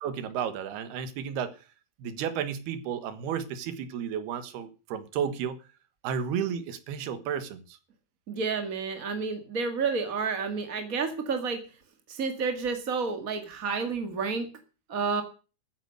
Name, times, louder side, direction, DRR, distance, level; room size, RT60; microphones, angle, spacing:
voice 1, 0.0-1.6 2.0-5.6 6.0-7.8, right 8 dB, 85° right, 3.5 m, -32 dB
voice 2, 8.3-11.6 12.1-14.5 14.9-15.2, right 5 dB, 40° right, 1.3 m, -30 dB
14.0 x 9.8 x 6.5 m
omnidirectional pair, 4.5 m